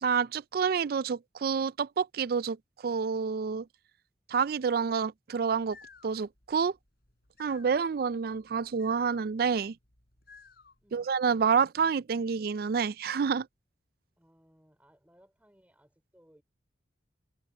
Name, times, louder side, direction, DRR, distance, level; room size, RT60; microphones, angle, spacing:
voice 1, 0.0-2.6 2.8-3.7 4.3-5.8 6.0-6.7 7.4-9.8 10.9-13.5, right 6 dB, 55° right, 0.3 m, -28 dB
sound 1, 5.4-11.0, left 5 dB, 60° left, 3.9 m, -57 dB
voice 2, 10.8-11.1 14.2-16.4, equal, 10° right, 3.6 m, -63 dB
head